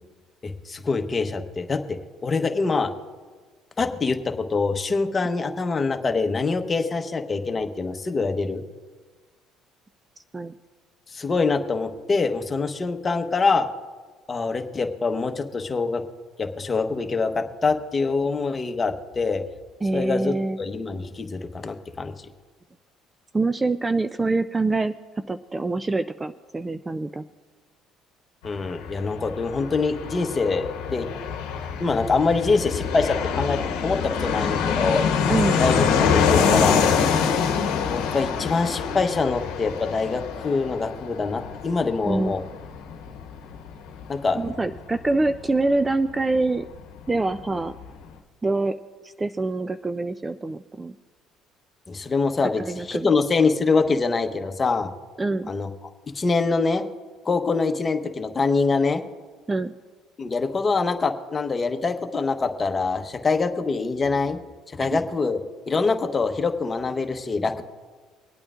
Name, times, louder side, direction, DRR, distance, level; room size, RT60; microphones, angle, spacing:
voice 1, 0.4-2.9 3.8-8.6 11.1-13.7 14.3-16.0 16.4-19.4 19.9-22.1 28.4-31.1 31.8-35.0 35.6-35.8 36.1-37.6 37.9-42.4 44.1-44.6 51.9-54.9 55.5-55.7 56.1-56.8 57.2-59.0 60.2-64.4 64.7-65.4 65.7-67.6, left 4 dB, 30° left, 6 dB, 1.0 m, -24 dB
voice 2, 19.8-20.6 23.3-24.9 25.3-27.2 35.3-35.6 42.1-42.3 44.3-46.7 47.1-47.7 48.4-48.7 49.0-51.0 52.6-53.1 55.2-55.5 59.5-59.7 64.9-65.0, right 3 dB, 20° right, 11 dB, 0.3 m, -25 dB
Fixed-wing aircraft airplane, 28.4-46.8 47.1-47.2 47.4-48.1, left 6 dB, 85° left, 0.9 m, -25 dB
24.5 x 8.8 x 2.5 m, 1.4 s
supercardioid pair, 80°, 0 cm